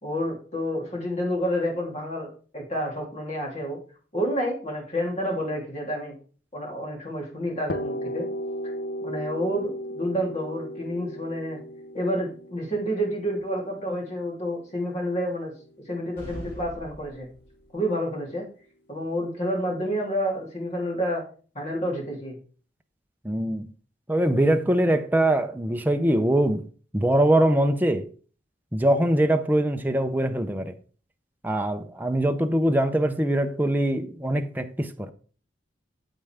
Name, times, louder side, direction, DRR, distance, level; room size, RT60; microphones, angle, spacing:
voice 1, 0.0-2.3 2.5-3.8 4.1-6.2 6.5-8.3 9.0-11.6 11.9-15.5 15.9-17.3 17.7-18.5 18.9-21.2 21.5-22.4, equal, 35° left, 3.2 m, -29 dB
sound 1, 7.7-15.4, equal, 60° left, 0.6 m, -35 dB
sound 2, 16.2-17.8, right 1 dB, 15° left, 5.4 m, -42 dB
voice 2, 23.2-23.7 24.1-26.7 26.9-28.1 28.7-30.8 31.4-35.1, right 1 dB, 10° right, 0.6 m, -23 dB
8.9 x 7.8 x 3.5 m
head